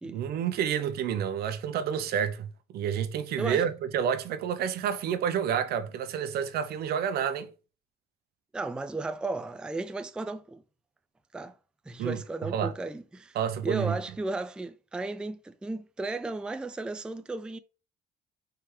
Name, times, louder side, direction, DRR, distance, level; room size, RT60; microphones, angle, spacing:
voice 1, 0.0-2.5 2.7-7.5 12.0-12.2 12.5-12.7 13.3-14.0, right 8 dB, 65° right, 0.7 m, -29 dB
voice 2, 8.5-10.6 11.3-11.6 11.9-13.4 13.6-17.6, right 2 dB, 5° right, 0.3 m, -35 dB
4.5 x 3.5 x 3.1 m
cardioid pair, 110°, 17 cm